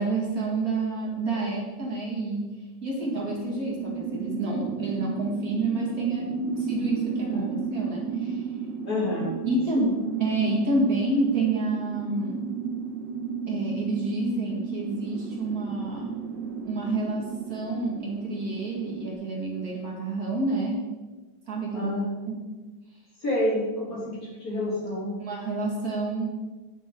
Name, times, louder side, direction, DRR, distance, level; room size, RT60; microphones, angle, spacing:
voice 1, 0.0-2.6 2.8-6.3 6.6-7.4 7.7-8.4 9.4-12.5 13.5-16.1 16.6-20.9 21.5-21.9 22.3-22.4 25.2-26.2, right 2 dB, 50° right, -3 dB, 2.3 m, -29 dB
sound 1, 3.0-19.1, right 6 dB, 70° right, 1.6 m, -33 dB
voice 2, 7.3-7.6 8.8-9.9 21.7-22.1 23.2-25.2, left 1 dB, 45° left, -6 dB, 3.4 m, -29 dB
10.5 x 9.0 x 3.7 m, 1.3 s
omnidirectional pair, 2.1 m